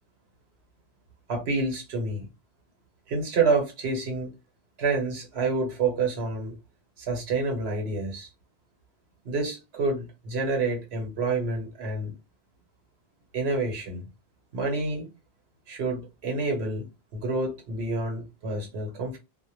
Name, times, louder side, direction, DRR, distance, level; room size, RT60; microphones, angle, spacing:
voice 1, 1.3-2.3 3.1-4.3 4.8-6.5 7.0-8.3 9.2-12.1 13.3-14.0 14.5-15.1 15.7-16.9 17.1-19.2, right 3 dB, 90° right, 1.0 m, -28 dB
2.1 x 2.1 x 3.0 m
omnidirectional pair, 1.0 m